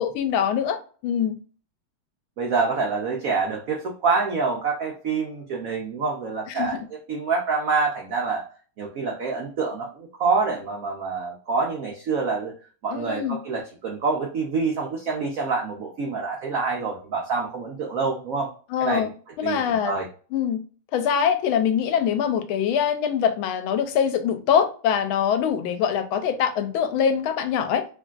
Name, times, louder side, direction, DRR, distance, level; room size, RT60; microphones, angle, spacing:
voice 1, 0.0-1.4 6.5-6.9 12.9-13.4 18.7-19.1 19.4-19.9 20.3-20.6 20.9-27.9, left 8 dB, 80° left, 1.3 m, -23 dB
voice 2, 2.4-6.8 7.1-8.4 8.8-12.5 12.8-18.5 18.8-19.1 19.4-20.1, right 4 dB, 85° right, 0.7 m, -26 dB
3.4 x 2.5 x 2.2 m
omnidirectional pair, 2.3 m